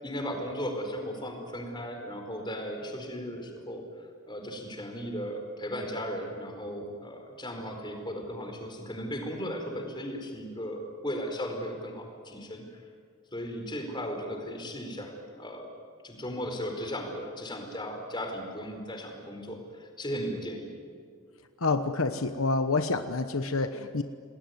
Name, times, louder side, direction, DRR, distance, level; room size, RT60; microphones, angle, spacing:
voice 1, 0.0-3.9 4.3-12.6 13.3-15.7 16.0-20.7, equal, 20° left, 3 dB, 4.6 m, -36 dB
voice 2, 21.6-24.0, left 3 dB, 70° left, 9 dB, 1.1 m, -28 dB
29.0 x 20.0 x 9.6 m, 2.2 s
head